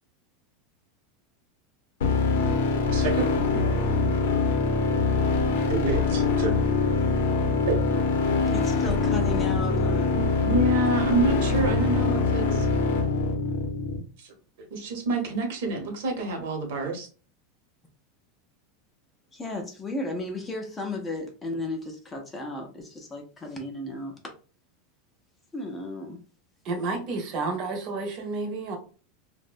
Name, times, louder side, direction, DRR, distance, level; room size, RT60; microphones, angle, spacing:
sound 1, 2.0-14.0, left 4 dB, 90° left, 0.6 m, -24 dB
voice 1, 2.9-3.6 5.7-6.5 7.7-7.8 10.1-12.6 14.2-14.3 14.7-17.1, right 2 dB, 65° right, 3 dB, 0.8 m, -27 dB
voice 2, 8.5-10.2 19.3-24.3 25.5-26.2, left 2 dB, 10° left, 3 dB, 0.4 m, -34 dB
voice 3, 26.6-28.8, right 3 dB, 35° right, 3 dB, 0.7 m, -30 dB
2.6 x 2.1 x 2.4 m, 0.37 s
supercardioid pair, 170°, 0 cm